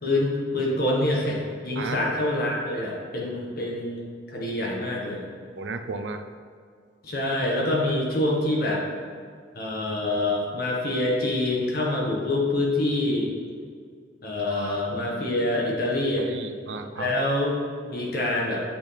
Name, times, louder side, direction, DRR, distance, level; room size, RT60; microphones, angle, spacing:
voice 1, 0.0-5.2 7.0-8.8 9.5-13.3 14.2-16.3 17.0-18.6, left 1 dB, 55° left, -3 dB, 1.7 m, -26 dB
voice 2, 5.6-6.2 14.5-14.8 16.2-17.1, right 4 dB, 75° right, 8 dB, 0.5 m, -34 dB
8.5 x 6.1 x 3.5 m, 2.1 s
head